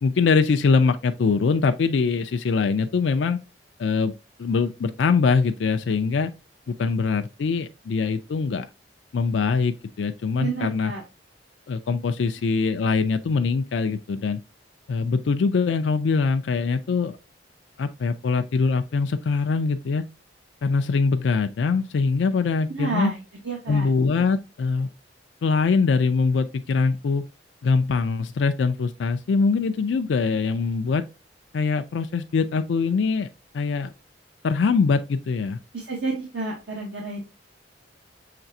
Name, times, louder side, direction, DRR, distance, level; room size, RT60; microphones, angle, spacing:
voice 1, 0.0-3.4 3.8-4.1 4.4-6.3 6.7-8.7 9.1-10.9 11.7-14.4 14.9-17.2 17.8-20.0 20.6-23.1 23.7-24.9 25.4-27.3 27.6-31.0 31.5-33.3 33.5-33.9 34.4-35.6, left 4 dB, 75° left, 0.4 m, -23 dB
voice 2, 10.4-11.0 22.7-23.2 23.4-23.9 35.7-37.3, right 3 dB, 75° right, 1.1 m, -30 dB
5.8 x 3.2 x 2.6 m
head